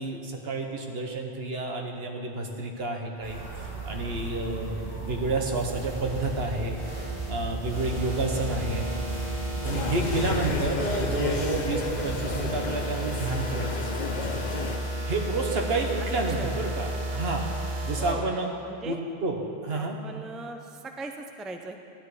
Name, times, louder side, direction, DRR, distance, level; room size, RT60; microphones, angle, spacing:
voice 1, 0.0-6.8 7.3-8.9 9.6-13.8 15.0-17.5 17.8-18.5 18.8-20.0, right 2 dB, 70° right, 2 dB, 1.4 m, -30 dB
sound 1, 3.2-12.5, right 4 dB, 35° right, 3.3 m, -37 dB
sound 2, 5.6-18.1, right 1 dB, 50° right, 2.4 m, -33 dB
sound 3, 9.6-14.8, left 4 dB, 50° left, 0.8 m, -32 dB
voice 2, 18.0-18.3 18.6-19.0 19.7-21.8, right 2 dB, ahead, 4 dB, 0.4 m, -39 dB
12.0 x 10.5 x 4.9 m, 2.7 s
omnidirectional pair, 1.1 m